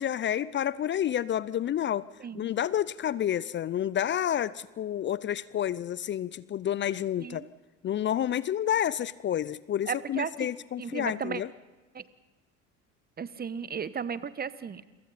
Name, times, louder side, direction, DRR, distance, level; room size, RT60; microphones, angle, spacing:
voice 1, 0.0-2.0 2.3-7.5 7.8-11.5, left 10 dB, 30° left, 20 dB, 0.6 m, -29 dB
voice 2, 9.9-10.5 10.8-11.4 11.9-12.0 13.2-14.9, right 6 dB, 25° right, 16 dB, 1.1 m, -35 dB
30.0 x 23.0 x 4.2 m, 1.2 s
figure-of-eight pair, 70°, 40 cm